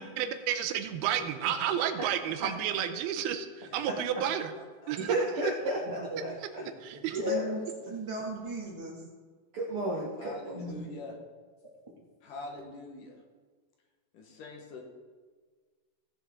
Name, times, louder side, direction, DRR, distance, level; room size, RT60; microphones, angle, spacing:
voice 1, 0.2-4.5 4.9-5.3 6.8-7.2, right 9 dB, 90° right, 9 dB, 2.7 m, -31 dB
voice 2, 3.6-5.4 10.2-11.1 12.2-13.2 14.1-14.8, left 2 dB, 65° left, 1 dB, 2.7 m, -45 dB
voice 3, 5.0-6.3 7.1-7.5 9.5-10.5, equal, 60° right, -4 dB, 1.4 m, -32 dB
voice 4, 5.8-6.2 6.6-9.0 10.5-10.8, right 2 dB, 15° right, -3 dB, 1.1 m, -39 dB
16.5 x 7.3 x 3.7 m, 1.5 s
omnidirectional pair, 4.4 m